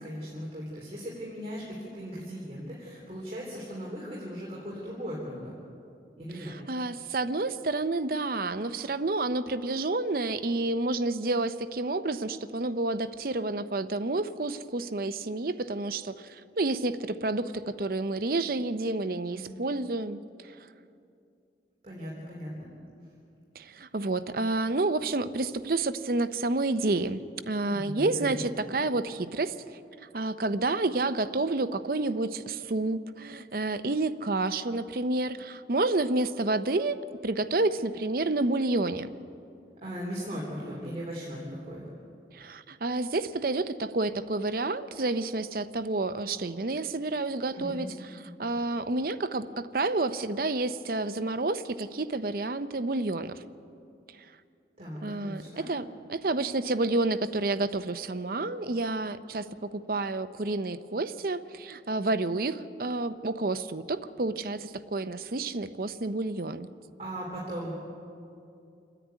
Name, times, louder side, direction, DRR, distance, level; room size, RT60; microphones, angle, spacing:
voice 1, 0.0-5.6 6.2-6.5 19.3-19.5 21.8-22.7 27.7-28.4 39.8-41.8 47.5-47.9 54.8-55.7 67.0-67.7, equal, 35° right, -5 dB, 3.5 m, -38 dB
voice 2, 6.3-20.2 20.5-20.6 23.5-27.2 27.5-29.5 30.0-37.0 37.2-39.1 42.3-53.4 55.0-66.7, right 2 dB, 50° right, 12 dB, 0.7 m, -29 dB
27.5 x 10.0 x 9.3 m, 2.6 s
head